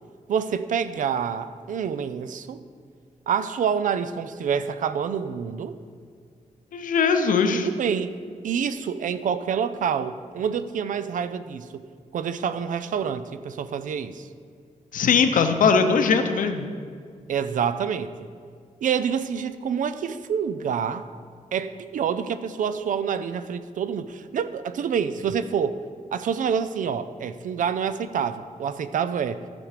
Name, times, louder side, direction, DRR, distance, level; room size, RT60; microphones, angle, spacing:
voice 1, 0.3-2.6 3.3-5.8 7.5-8.2 8.4-11.8 12.1-14.3 17.3-18.1 18.8-21.1 21.5-25.8 26.1-29.4, right 7 dB, 70° right, 12 dB, 0.5 m, -27 dB
voice 2, 6.7-7.7 14.9-16.7, left 5 dB, 75° left, 7 dB, 0.8 m, -20 dB
14.0 x 5.2 x 4.9 m, 2.1 s
wide cardioid pair, 125°, 14 cm